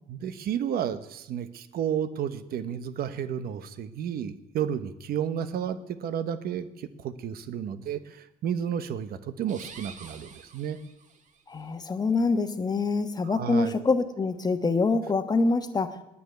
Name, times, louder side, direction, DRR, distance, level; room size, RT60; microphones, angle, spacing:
voice 1, 0.1-10.8 13.2-13.7, right 9 dB, 65° right, 11 dB, 1.1 m, -32 dB
sound 1, 9.4-11.4, right 6 dB, 45° right, 1.6 m, -47 dB
voice 2, 11.5-16.0, left 3 dB, 25° left, 9 dB, 1.2 m, -25 dB
10.0 x 9.5 x 9.4 m, 0.91 s
cardioid pair, 110°, 17 cm